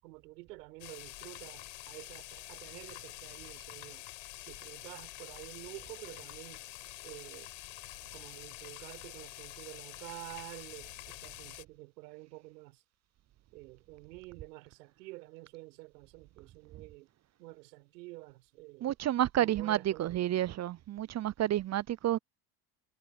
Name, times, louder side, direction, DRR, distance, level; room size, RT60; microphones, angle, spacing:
voice 1, 0.0-4.1 4.4-6.6 7.0-7.5 8.1-12.8 13.5-17.1 17.4-19.0 19.4-20.2, right 21 dB, 85° right, 7.6 m, -49 dB
sound 1, 0.8-11.6, left 18 dB, 70° left, 7.0 m, -47 dB
voice 2, 18.8-22.2, right 12 dB, 35° right, 0.5 m, -30 dB
hypercardioid pair, 75°, 48 cm